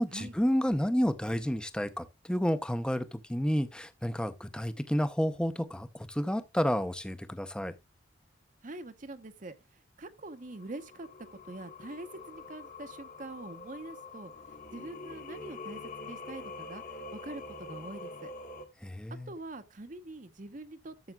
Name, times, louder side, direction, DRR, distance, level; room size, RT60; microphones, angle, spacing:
voice 1, 0.0-7.7 18.8-19.3, equal, 5° left, 0.6 m, -30 dB
voice 2, 8.6-18.3 19.3-20.9, right 2 dB, 45° right, 0.8 m, -44 dB
Singing, 10.4-18.6, left 3 dB, 45° left, 1.4 m, -45 dB
13.5 x 7.1 x 2.3 m
head